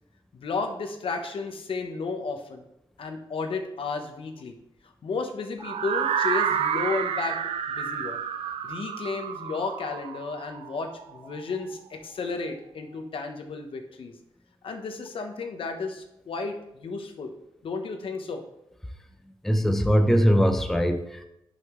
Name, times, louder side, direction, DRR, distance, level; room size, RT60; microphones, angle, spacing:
voice 1, 0.4-2.6 3.0-4.6 5.0-7.4 7.7-8.2 8.6-14.1 14.6-17.3 17.6-18.4, left 4 dB, 65° left, 5 dB, 1.0 m, -33 dB
sound 1, 5.6-11.5, right 7 dB, 75° right, 0.5 m, -29 dB
voice 2, 19.4-21.2, equal, 5° left, 6 dB, 0.5 m, -21 dB
11.0 x 5.6 x 3.2 m, 0.84 s
wide cardioid pair, 145°, 10 cm